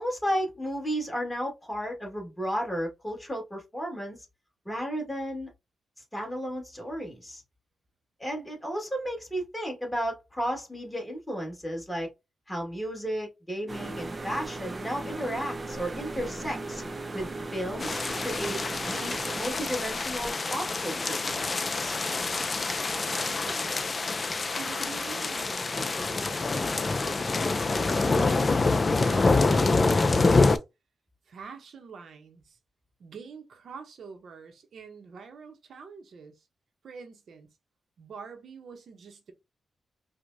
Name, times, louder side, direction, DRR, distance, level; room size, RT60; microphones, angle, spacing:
voice 1, 0.0-4.2 4.7-5.5 6.1-7.4 8.2-12.1 12.5-16.8 17.1-21.9, equal, 10° left, 1.6 m, -33 dB
sound 1, 13.7-20.3, right 2 dB, 30° right, 0.5 m, -38 dB
sound 2, 17.8-30.6, left 3 dB, 35° left, 0.4 m, -26 dB
voice 2, 22.9-23.8 24.6-28.3 28.8-30.6 31.3-32.6 33.0-36.5 36.8-37.6 38.0-39.3, right 5 dB, 70° right, 0.7 m, -46 dB
4.6 x 2.1 x 2.6 m
cardioid pair, 85°, 0 cm